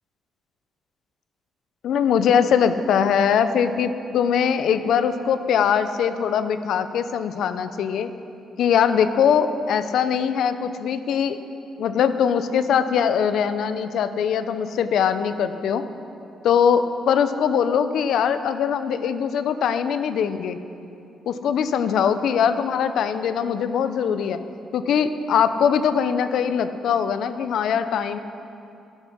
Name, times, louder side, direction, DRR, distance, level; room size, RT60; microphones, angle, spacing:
voice 1, 1.8-8.1 8.6-11.4 11.8-15.8 16.4-20.6 21.3-24.4 24.7-28.2, left 7 dB, 75° left, 11 dB, 0.6 m, -21 dB
11.5 x 11.0 x 6.2 m, 2.7 s
cardioid pair, 90°, 0 cm